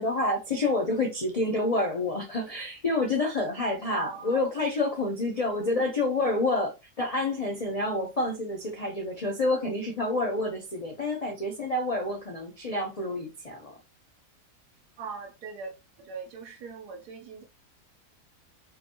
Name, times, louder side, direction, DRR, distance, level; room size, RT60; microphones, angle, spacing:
voice 1, 0.0-13.7, left 2 dB, 70° left, 0.3 m, -28 dB
voice 2, 3.9-4.5 15.0-17.4, right 4 dB, 80° right, 1.2 m, -40 dB
3.8 x 2.6 x 2.8 m
omnidirectional pair, 1.7 m